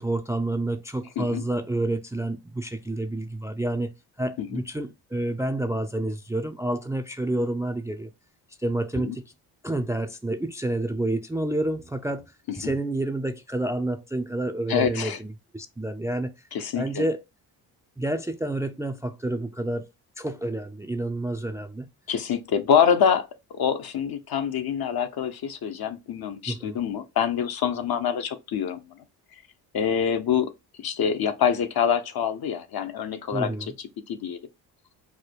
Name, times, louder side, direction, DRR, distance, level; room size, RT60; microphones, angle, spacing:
voice 1, 0.0-3.9 4.2-8.1 8.6-9.2 9.6-16.3 16.8-17.2 18.0-19.9 20.2-21.9 26.5-26.8 33.3-33.7, right 1 dB, 5° right, 0.4 m, -29 dB
voice 2, 14.7-15.2 16.5-17.0 22.1-23.3 23.5-29.0 29.7-30.5 30.8-33.5 34.1-34.4, left 8 dB, 55° left, 0.9 m, -25 dB
4.8 x 2.2 x 4.5 m
cardioid pair, 75°, 43 cm